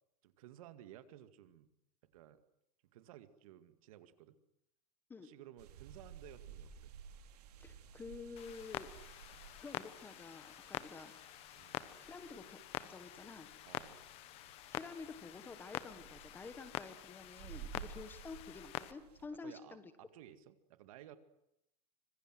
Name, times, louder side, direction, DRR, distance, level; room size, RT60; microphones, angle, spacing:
voice 1, 0.2-1.7 2.0-2.4 2.9-4.4 5.2-6.9 11.6-11.8 13.7-14.0 19.4-21.2, right 12 dB, 60° right, 11 dB, 2.3 m, -56 dB
sound 1, 5.6-19.3, right 7 dB, 80° right, 3.4 m, -55 dB
voice 2, 7.6-9.0 9.6-11.1 12.0-13.5 14.7-19.9, left 4 dB, 10° left, 11 dB, 1.5 m, -50 dB
Clock, 8.4-18.9, left 15 dB, 30° left, 1.1 m, -47 dB
25.5 x 23.0 x 7.8 m, 0.80 s
supercardioid pair, 170°, 20 cm